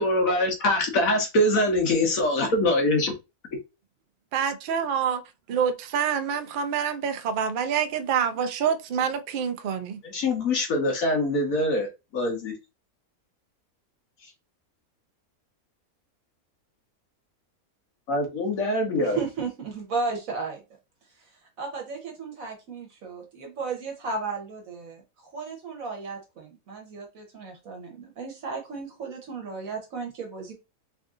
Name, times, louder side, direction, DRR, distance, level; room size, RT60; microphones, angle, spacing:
voice 1, 0.0-3.1 10.0-11.9 12.1-12.5 18.1-19.2, left 1 dB, 70° left, 1.3 m, -23 dB
voice 2, 4.3-5.2 5.5-10.0, right 7 dB, 85° right, 0.4 m, -26 dB
voice 3, 19.0-20.6 21.6-30.5, right 4 dB, 70° right, 1.3 m, -34 dB
3.5 x 2.6 x 3.6 m
omnidirectional pair, 1.5 m